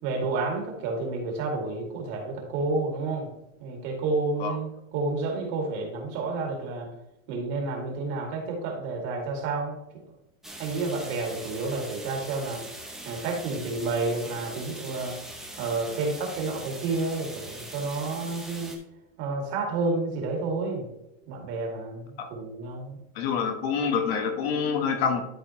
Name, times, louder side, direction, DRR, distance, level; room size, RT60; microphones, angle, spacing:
voice 1, 0.0-3.3 3.6-6.9 7.3-9.8 10.6-12.6 13.0-15.2 15.6-18.7 19.2-20.9 21.3-22.0 22.3-23.0, right 3 dB, 40° right, 1 dB, 2.2 m, -30 dB
sound 1, 10.4-18.8, right 1 dB, ahead, 0.5 m, -42 dB
voice 2, 23.2-25.2, left 6 dB, 50° left, 6 dB, 1.2 m, -26 dB
12.5 x 4.2 x 3.0 m, 0.88 s
supercardioid pair, 160°, 41 cm